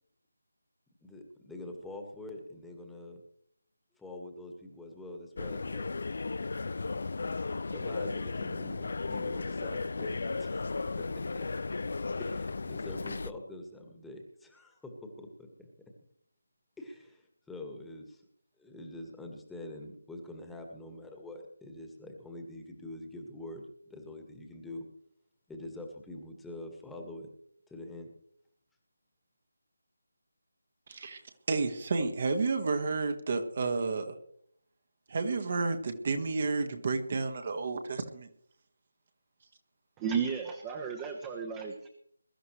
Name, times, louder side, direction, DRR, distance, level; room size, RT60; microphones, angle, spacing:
voice 1, 1.0-3.2 4.0-5.9 7.7-11.5 12.2-14.9 15.2-15.7 16.8-18.2 18.6-23.6 23.9-24.8 25.5-27.3 27.7-28.1, left 1 dB, 5° left, 1 dB, 1.7 m, -45 dB
sound 1, 5.4-13.3, left 3 dB, 55° left, 0.5 m, -35 dB
voice 2, 31.5-34.1 35.1-38.3, right 3 dB, 40° right, 6 dB, 1.6 m, -31 dB
voice 3, 40.0-41.9, right 6 dB, 15° right, 4 dB, 1.2 m, -33 dB
22.0 x 12.5 x 3.2 m, 0.66 s
figure-of-eight pair, 155°, 0 cm